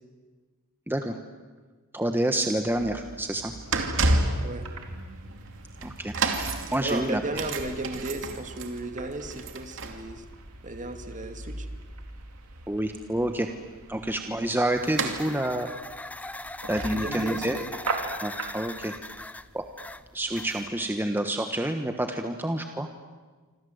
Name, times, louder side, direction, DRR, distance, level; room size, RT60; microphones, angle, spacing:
voice 1, 1.9-3.5 5.8-7.2 12.7-13.5 13.9-15.7 16.7-17.6 18.2-19.0 19.5-19.7 20.1-22.9, right 1 dB, 10° right, 5 dB, 1.3 m, -28 dB
sound 1, 2.6-19.6 20.3-20.4, right 2 dB, 60° right, 2.7 m, -33 dB
sound 2, 3.6-18.7, right 4 dB, 80° right, 3.6 m, -43 dB
voice 2, 6.8-10.2 10.6-11.7 16.9-17.7, right 2 dB, 35° right, 7 dB, 2.4 m, -35 dB
sound 3, 14.7-20.9, left 1 dB, 5° left, 0.8 m, -40 dB
27.0 x 26.5 x 8.0 m, 1.4 s
head